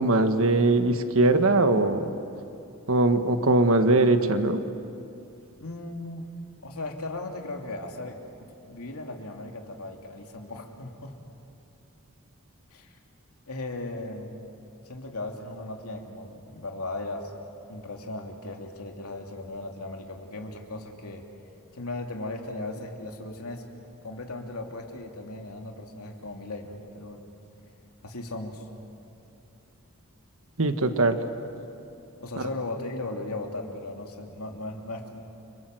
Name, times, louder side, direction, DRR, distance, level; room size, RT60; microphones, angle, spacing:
voice 1, 0.0-2.1 2.9-4.6 30.6-31.2 32.4-32.5, right 2 dB, 65° right, 8 dB, 1.5 m, -21 dB
voice 2, 5.6-6.2 6.6-8.2 8.7-11.2 12.7-13.0 13.5-14.4 14.8-17.3 17.7-21.2 21.7-23.6 24.0-27.2 28.0-28.6 32.2-35.2, left 2 dB, 85° left, 2 dB, 2.9 m, -37 dB
29.5 x 25.5 x 7.8 m, 2.8 s
head